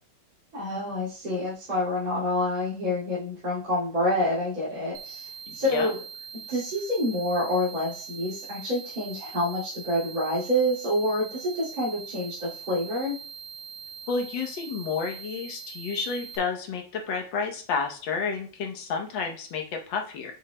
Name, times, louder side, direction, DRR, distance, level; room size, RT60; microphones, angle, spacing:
voice 1, 0.5-6.0 6.5-13.1, left 1 dB, 55° right, -12 dB, 3.0 m, -27 dB
sound 1, 4.9-16.4, right 7 dB, 85° right, 1.7 m, -42 dB
voice 2, 5.5-5.9 14.1-20.3, left 5 dB, 85° left, 3 dB, 1.7 m, -30 dB
7.9 x 6.5 x 2.2 m, 0.43 s
omnidirectional pair, 2.0 m